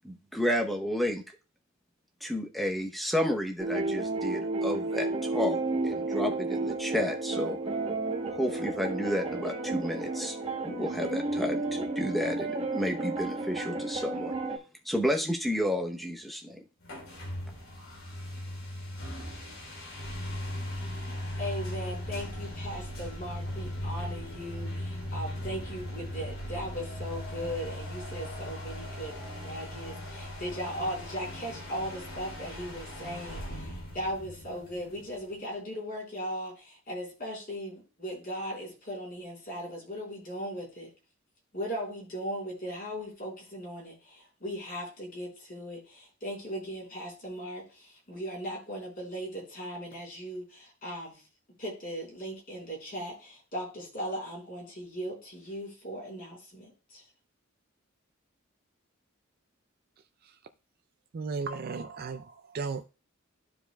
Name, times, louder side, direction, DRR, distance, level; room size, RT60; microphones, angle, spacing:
voice 1, 0.0-1.2 2.2-5.6 5.8-7.6 8.3-10.4 10.6-14.3 14.8-16.6, equal, ahead, 2 dB, 0.8 m, -31 dB
sound 1, 3.6-14.6, right 2 dB, 30° right, 1.0 m, -32 dB
sound 2, 16.8-35.3, left 1 dB, 70° left, 2.7 m, -38 dB
voice 2, 21.4-40.9 41.5-51.2 51.6-57.0, equal, 45° left, -2 dB, 3.9 m, -38 dB
voice 3, 61.1-62.9, right 4 dB, 45° right, 8 dB, 0.4 m, -35 dB
13.5 x 4.8 x 2.2 m, 0.32 s
head